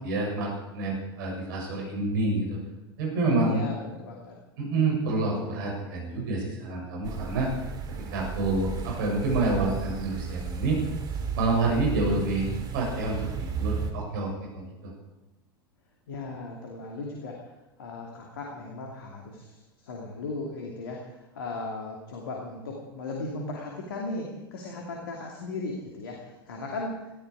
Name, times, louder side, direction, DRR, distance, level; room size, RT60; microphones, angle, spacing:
voice 1, 0.0-2.6 3.0-3.6 4.6-7.5 8.1-10.8 11.4-12.5 12.7-14.9, right 3 dB, 60° right, -1 dB, 7.2 m, -28 dB
voice 2, 3.2-4.4 16.1-17.5 17.8-19.6 19.8-26.9, left 3 dB, 65° left, 0 dB, 2.6 m, -36 dB
sound 1, 7.0-13.9, right 6 dB, 35° right, 2.6 m, -34 dB
19.0 x 14.0 x 4.9 m, 1.0 s
figure-of-eight pair, 80°, 13 cm